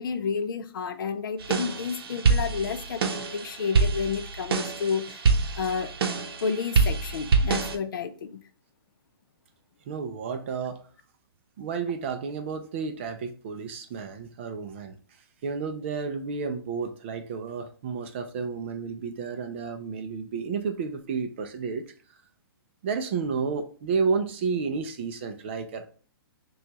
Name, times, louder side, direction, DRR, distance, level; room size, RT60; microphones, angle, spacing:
voice 1, 0.0-5.9 6.4-8.4, left 6 dB, 60° left, 0.5 m, -31 dB
sound 1, 1.4-7.7, right 4 dB, 70° right, 0.7 m, -26 dB
voice 2, 9.9-10.8 11.6-15.0 15.4-21.9 22.8-25.9, right 5 dB, 30° right, 0.4 m, -31 dB
5.9 x 2.3 x 2.9 m
hypercardioid pair, 165°, 13 cm